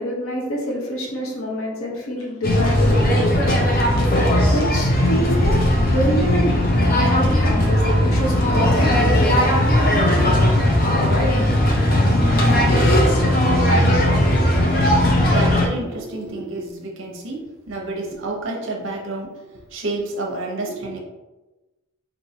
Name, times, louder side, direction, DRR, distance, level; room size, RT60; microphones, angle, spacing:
voice 1, 0.0-3.4 4.4-9.6, equal, 90° left, -1 dB, 0.9 m, -26 dB
Ordering snacks at a carnivale, 2.4-15.7, left 1 dB, 45° left, 0.6 m, -17 dB
voice 2, 15.3-19.3 19.7-21.0, right 2 dB, 70° right, -1 dB, 0.8 m, -29 dB
4.5 x 2.6 x 2.8 m, 1.1 s
head